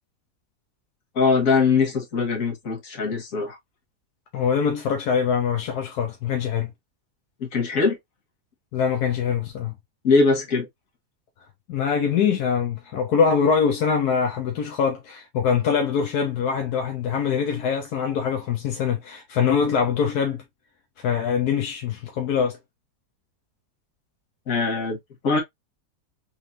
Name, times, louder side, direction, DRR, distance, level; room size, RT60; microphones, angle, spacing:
voice 1, 1.2-3.6 7.4-8.0 10.0-10.7 24.5-25.0 25.2-25.4, left 4 dB, 55° left, 1.8 m, -21 dB
voice 2, 4.3-6.7 8.7-9.7 11.7-20.4 21.0-22.6, left 6 dB, 75° left, 1.3 m, -23 dB
4.2 x 3.3 x 2.5 m
omnidirectional pair, 1.7 m